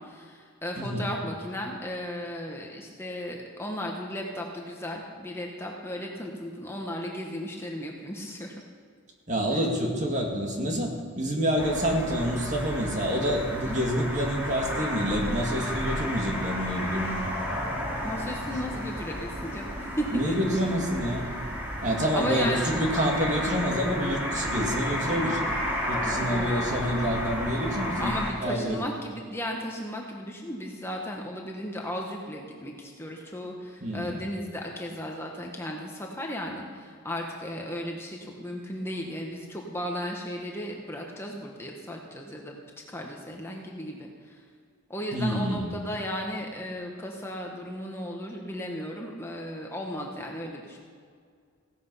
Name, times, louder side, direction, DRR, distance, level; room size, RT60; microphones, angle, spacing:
voice 1, 0.0-8.6 9.5-9.6 13.6-13.9 18.0-20.3 21.2-21.3 22.1-22.7 26.2-26.5 28.0-42.6 42.9-44.4 44.9-50.8, equal, 10° left, 0 dB, 1.3 m, -35 dB
voice 2, 0.8-1.1 9.3-17.2 20.1-21.3 21.8-25.4 25.9-28.2 28.4-28.8 33.8-34.2 45.1-45.7, equal, 35° right, 1 dB, 2.3 m, -27 dB
sound 1, 11.6-28.3, equal, 10° right, 2.9 m, -32 dB
16.5 x 13.5 x 5.6 m, 2.1 s
head